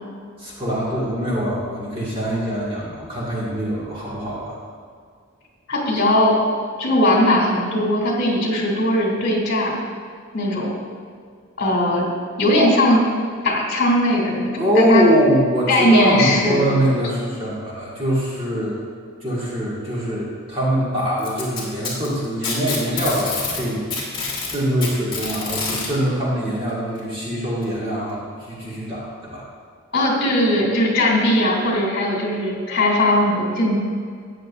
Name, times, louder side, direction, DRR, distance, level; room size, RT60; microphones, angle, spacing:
voice 1, 0.4-4.6 14.6-18.8 19.2-23.8 24.5-29.4, equal, 25° right, -6 dB, 1.8 m, -23 dB
voice 2, 5.7-6.3 6.8-9.8 10.3-10.7 11.6-12.1 12.4-13.0 13.4-15.0 15.7-16.6 29.9-33.7, left 1 dB, 55° left, -3 dB, 2.7 m, -19 dB
Packing tape duct tape, 21.2-23.6 23.9-25.9 27.0-27.1 27.6-27.7 28.6-28.7, left 4 dB, 25° left, 2.5 m, -27 dB
13.5 x 9.1 x 2.5 m, 2.1 s
head